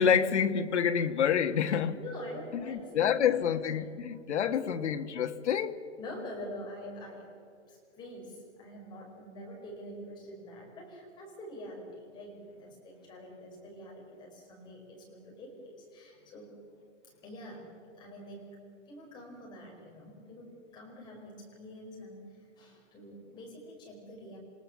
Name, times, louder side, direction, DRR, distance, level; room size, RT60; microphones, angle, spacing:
voice 1, 0.0-2.0 2.5-5.8, left 8 dB, 70° left, 1.6 m, -28 dB
voice 2, 1.9-3.5 4.5-4.7 6.0-7.3 7.7-16.5 17.2-18.5 18.8-24.4, equal, 10° left, 5.1 m, -46 dB
28.5 x 18.5 x 7.2 m
hypercardioid pair, 175°, 36 cm